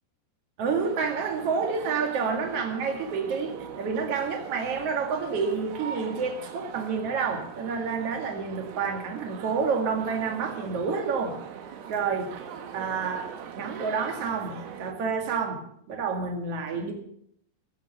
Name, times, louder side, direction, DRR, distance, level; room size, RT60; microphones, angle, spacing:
voice 1, 0.6-11.4 11.9-12.3 12.7-13.3 13.5-15.6 15.9-16.9, right 5 dB, 45° right, 4 dB, 2.6 m, -29 dB
sound 1, 0.8-14.9, right 8 dB, 75° right, 3.3 m, -42 dB
19.5 x 8.1 x 6.8 m, 0.68 s
omnidirectional pair, 4.8 m